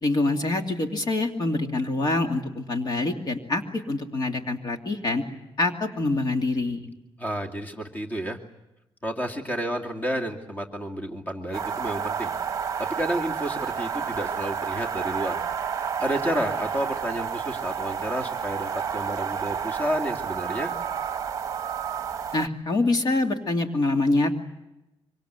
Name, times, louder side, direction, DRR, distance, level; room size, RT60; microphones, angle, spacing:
voice 1, 0.0-5.2 5.6-6.9 22.3-24.4, left 2 dB, 45° left, 4 dB, 2.6 m, -25 dB
voice 2, 7.2-8.4 9.0-12.3 12.8-15.4 16.0-20.7, right 1 dB, 20° left, 4 dB, 2.5 m, -30 dB
sound 1, 11.5-22.5, right 7 dB, 35° right, 1.1 m, -30 dB
25.0 x 24.5 x 8.2 m, 0.93 s
cardioid pair, 120°, 9 cm